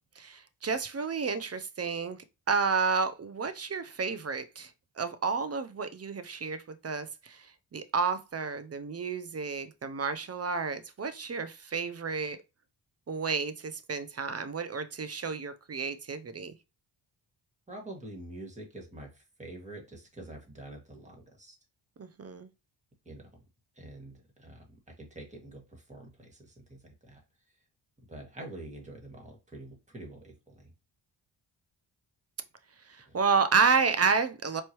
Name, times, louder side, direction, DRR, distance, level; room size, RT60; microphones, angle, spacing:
voice 1, 0.2-2.2 2.5-4.7 5.0-12.4 13.1-16.5 22.0-22.5 32.9-34.6, right 5 dB, 30° right, 0.6 m, -30 dB
voice 2, 17.7-21.5 23.1-23.2 23.8-24.7 25.0-27.2 28.1-30.7 33.1-33.2, right 1 dB, 15° right, 1.8 m, -46 dB
4.4 x 3.1 x 3.0 m
cardioid pair, 55°, 48 cm